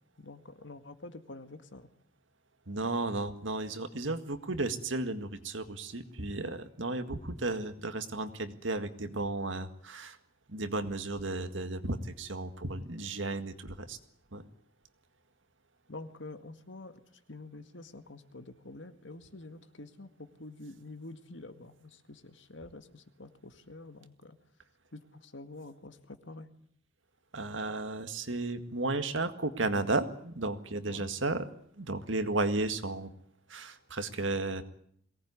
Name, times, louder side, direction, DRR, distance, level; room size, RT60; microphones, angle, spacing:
voice 1, 0.2-1.9 15.9-17.0 17.3-24.4 24.9-26.5 30.9-31.1, left 2 dB, 70° left, 9 dB, 2.0 m, -47 dB
voice 2, 2.7-10.2 10.5-14.0 14.3-14.4 27.3-31.4 31.8-33.1 33.5-34.6, right 2 dB, 75° right, 9 dB, 1.9 m, -34 dB
22.5 x 18.5 x 9.6 m, 0.66 s
head